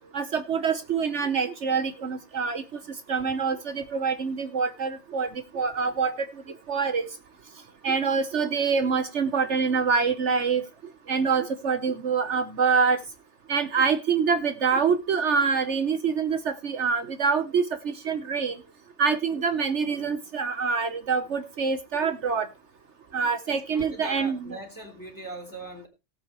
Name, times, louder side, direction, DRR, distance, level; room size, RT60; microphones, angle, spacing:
voice 1, 0.1-2.6 3.1-5.3 5.5-6.3 6.7-7.1 7.8-10.6 11.1-13.0 13.5-18.6 19.0-22.5 23.1-24.4, right 5 dB, 65° right, 10 dB, 1.4 m, -25 dB
voice 2, 23.5-25.9, right 1 dB, 15° left, 5 dB, 3.5 m, -40 dB
18.5 x 8.2 x 3.1 m, 0.27 s
omnidirectional pair, 1.3 m